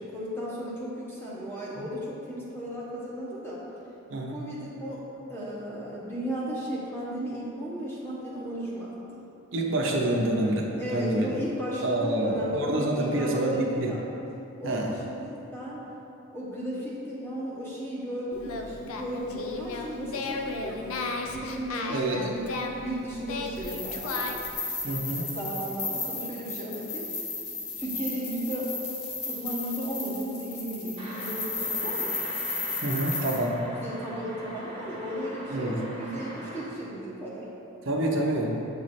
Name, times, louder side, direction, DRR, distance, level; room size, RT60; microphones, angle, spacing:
voice 1, 0.0-3.6 4.3-5.0 5.3-9.2 10.8-14.0 14.6-15.8 16.3-22.5 22.8-24.3 25.2-27.1 27.8-28.7 29.3-32.2 33.7-37.5, equal, 10° left, -6 dB, 1.0 m, -35 dB
voice 2, 4.1-4.4 9.5-11.3 11.8-14.0 14.6-14.9 21.9-22.3 24.8-25.3 32.8-33.6 35.5-35.8 37.9-38.5, right 1 dB, 60° right, -1 dB, 0.7 m, -27 dB
Singing, 18.3-24.6, left 3 dB, 80° left, 0.5 m, -35 dB
sound 1, 23.6-33.4, left 3 dB, 50° left, 1.0 m, -34 dB
sound 2, 31.0-36.6, equal, 25° right, 0.9 m, -41 dB
8.5 x 3.1 x 4.2 m, 2.8 s
head